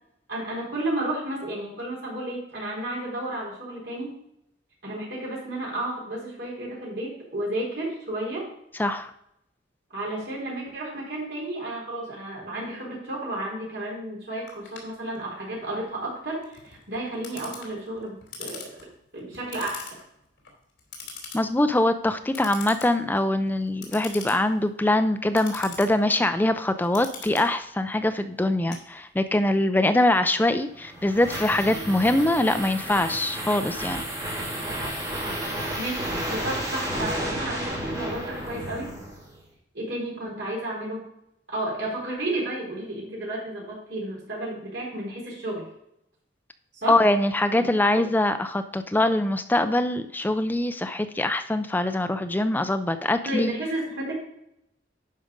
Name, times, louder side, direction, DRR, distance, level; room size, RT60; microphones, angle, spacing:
voice 1, 0.3-4.1 4.8-8.4 9.9-18.7 19.1-19.9 35.7-38.9 39.7-41.0 41.5-45.6 46.8-47.0 47.5-47.6 47.9-48.0 53.2-54.2, right 1 dB, 65° right, -4 dB, 4.2 m, -32 dB
voice 2, 8.8-9.1 21.3-34.0 46.9-53.5, left 1 dB, 10° left, 9 dB, 0.4 m, -23 dB
Clock, 14.5-29.4, left 5 dB, 75° left, 3.0 m, -44 dB
sound 1, 30.6-39.4, right 1 dB, 20° right, 3.4 m, -32 dB
11.0 x 5.1 x 5.1 m, 0.78 s
head